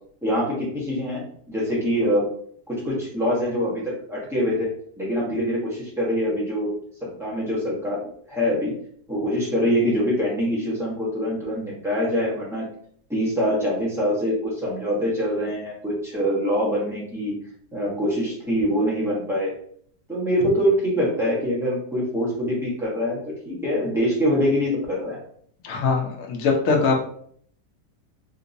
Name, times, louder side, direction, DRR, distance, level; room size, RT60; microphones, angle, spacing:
voice 1, 0.2-2.3 2.7-4.7 5.0-6.7 7.0-8.7 9.1-12.7 13.1-17.3 17.7-19.5 20.1-25.2, equal, ahead, -7 dB, 0.7 m, -24 dB
voice 2, 25.6-27.1, left 4 dB, 65° left, 1 dB, 0.9 m, -22 dB
3.7 x 2.6 x 2.6 m, 0.62 s
omnidirectional pair, 1.8 m